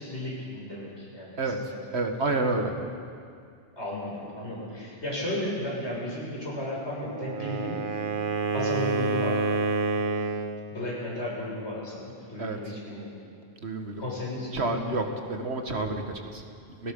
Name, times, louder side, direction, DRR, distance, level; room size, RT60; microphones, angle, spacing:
voice 1, 0.0-1.7 3.7-7.9 8.5-9.4 10.0-10.2 10.7-13.2 14.0-15.0, left 1 dB, 70° left, -5 dB, 6.9 m, -34 dB
voice 2, 1.4-2.7 12.4-12.8 13.6-14.0 14.5-16.9, right 2 dB, 65° right, 4 dB, 1.9 m, -30 dB
Wind instrument woodwind instrument, 7.0-10.6, right 4 dB, 50° right, 1.2 m, -28 dB
29.5 x 18.5 x 5.4 m, 2.3 s
omnidirectional pair, 1.2 m